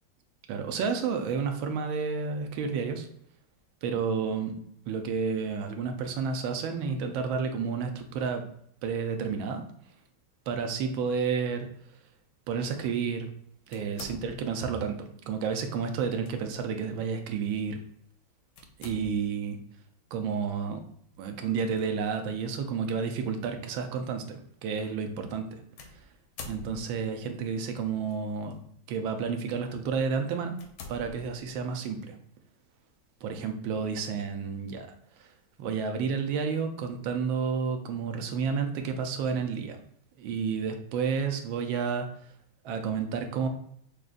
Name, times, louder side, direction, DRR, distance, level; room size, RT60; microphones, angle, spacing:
voice 1, 0.5-3.1 3.8-4.6 4.9-8.5 8.8-9.7 10.5-11.7 12.5-13.3 13.7-17.8 18.8-19.6 20.1-20.8 21.2-25.6 25.9-26.0 26.5-28.6 28.9-30.6 30.9-32.2 33.2-34.9 35.2-35.3 35.6-39.8 40.2-42.1 42.6-43.5, right 6 dB, 75° right, 6 dB, 1.4 m, -31 dB
sound 1, 13.7-14.7 16.0-16.3 16.8-16.9 18.6-19.4 21.5-21.8 22.6-22.7 25.8-27.2 28.1-28.5 29.1-29.3 29.8-29.9 30.5-31.8, left 4 dB, 85° left, 1.5 m, -46 dB
6.3 x 2.3 x 2.4 m, 0.66 s
omnidirectional pair, 2.3 m